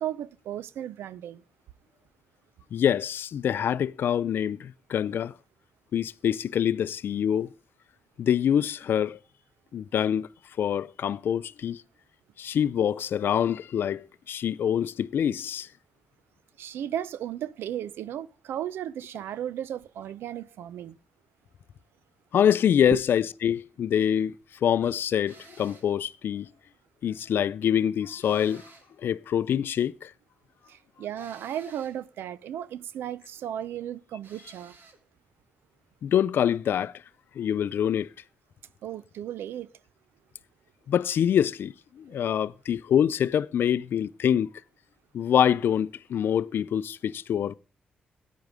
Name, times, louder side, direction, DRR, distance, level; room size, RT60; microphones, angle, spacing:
voice 1, 0.0-1.4 16.6-21.0 22.9-23.0 30.7-34.7 38.8-39.7 42.1-42.2, right 10 dB, 85° right, 0.5 m, -35 dB
voice 2, 2.7-5.3 5.9-7.5 8.2-9.2 9.7-10.3 10.6-11.8 12.4-15.7 22.3-24.3 24.6-26.5 27.0-28.6 29.0-30.1 36.0-36.9 37.4-38.1 40.9-44.5 45.1-47.6, left 9 dB, 70° left, 0.4 m, -25 dB
sound 1, 25.3-26.0 28.2-29.0 31.2-32.0 34.2-35.0, right 4 dB, 65° right, 2.2 m, -53 dB
13.5 x 9.3 x 3.6 m
supercardioid pair, 55°, 4 cm